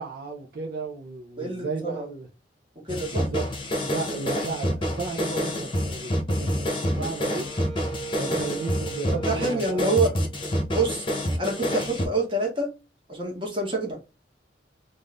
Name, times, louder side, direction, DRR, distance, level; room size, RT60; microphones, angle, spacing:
voice 1, 0.0-2.3 3.1-3.5 3.8-7.6 8.2-10.0, right 4 dB, 60° right, 0.7 m, -34 dB
voice 2, 1.4-2.1 2.8-3.3 8.2-8.5 9.1-10.1 10.7-11.0 11.4-12.7 13.1-14.0, right 2 dB, 30° right, 1.6 m, -27 dB
sound 1, 2.9-12.1, equal, 30° left, 0.9 m, -27 dB
Wind instrument woodwind instrument, 6.8-11.0, right 5 dB, 5° left, 1.0 m, -41 dB
3.6 x 2.6 x 3.5 m
head